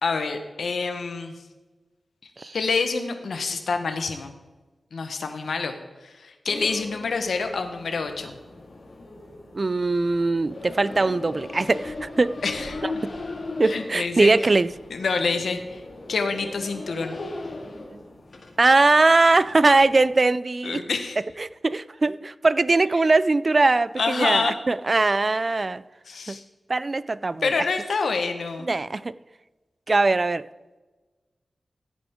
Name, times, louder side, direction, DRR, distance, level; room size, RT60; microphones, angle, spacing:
voice 1, 0.0-1.4 2.5-4.3 4.9-8.4 12.4-12.8 13.7-14.3 14.9-15.8 16.1-17.2 20.6-21.2 24.0-24.5 26.1-26.4 27.4-28.7, left 4 dB, 85° left, 7 dB, 1.2 m, -27 dB
sound 1, 6.5-20.2, left 2 dB, 60° left, 2.1 m, -38 dB
voice 2, 9.5-12.3 12.8-12.9 13.6-14.7 17.9-18.0 18.6-20.8 21.4-25.8 26.3-26.4 26.7-27.7 28.6-29.2 29.9-30.4, right 3 dB, 40° right, 17 dB, 0.3 m, -21 dB
15.5 x 8.5 x 3.7 m, 1.2 s
wide cardioid pair, 90°, 0 cm